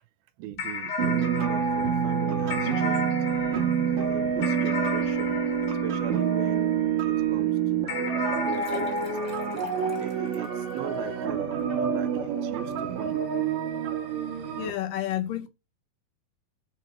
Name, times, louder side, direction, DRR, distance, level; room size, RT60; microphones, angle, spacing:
voice 1, 0.4-3.2 3.5-9.5 10.0-13.2, right 13 dB, 80° right, 2.4 m, -39 dB
sound 1, 0.6-7.2 7.9-10.6, left 4 dB, 55° left, 3.0 m, -36 dB
sound 2, 1.0-14.7, right 7 dB, 60° right, 2.2 m, -27 dB
sound 3, 8.3-10.8, left 1 dB, 10° right, 0.8 m, -41 dB
voice 2, 14.6-15.5, left 12 dB, 75° left, 2.2 m, -30 dB
10.5 x 3.7 x 4.3 m
omnidirectional pair, 4.3 m